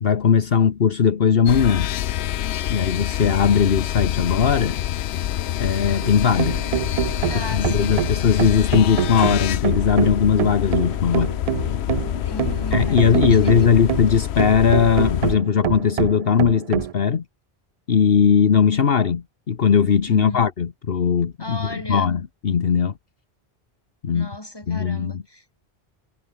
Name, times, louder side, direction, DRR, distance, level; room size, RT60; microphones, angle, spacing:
voice 1, 0.0-1.9 2.7-4.8 5.6-6.6 7.3-11.3 12.7-17.2 17.9-22.9 24.0-24.3 24.7-25.2, left 7 dB, 65° left, 1.3 m, -19 dB
sound 1, 1.5-15.3, left 12 dB, 85° left, 0.9 m, -26 dB
sound 2, 6.0-16.9, right 9 dB, 55° right, 0.4 m, -26 dB
voice 2, 7.3-8.0 12.2-13.7 20.1-20.4 21.4-22.1 24.1-25.6, left 1 dB, 20° left, 4.6 m, -36 dB
omnidirectional pair, 1.1 m